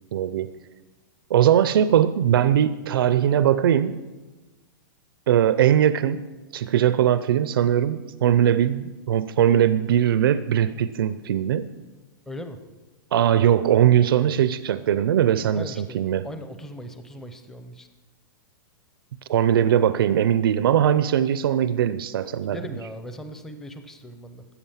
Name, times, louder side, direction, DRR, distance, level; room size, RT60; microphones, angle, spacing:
voice 1, 0.1-0.5 1.3-4.0 5.3-6.2 6.5-11.7 13.1-16.3 19.3-22.6, right 10 dB, 80° right, 13 dB, 0.6 m, -20 dB
voice 2, 12.3-12.6 15.5-17.9 22.5-24.4, equal, 5° left, 8 dB, 0.6 m, -39 dB
13.0 x 8.4 x 7.1 m, 1.2 s
supercardioid pair, 175°, 12 cm